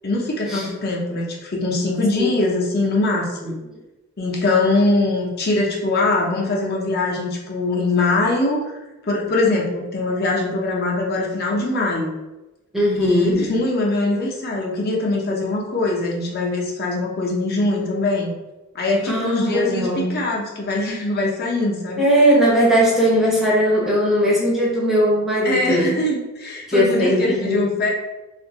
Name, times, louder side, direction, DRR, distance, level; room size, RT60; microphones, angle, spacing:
voice 1, 0.0-3.5 4.2-8.8 9.1-12.1 13.0-18.3 18.7-22.0 25.4-27.9, left 2 dB, 45° left, -1 dB, 0.6 m, -22 dB
voice 2, 12.7-13.5 19.0-20.2 22.0-25.9 26.7-27.7, equal, ahead, -5 dB, 0.6 m, -18 dB
2.6 x 2.5 x 3.9 m, 1.0 s
head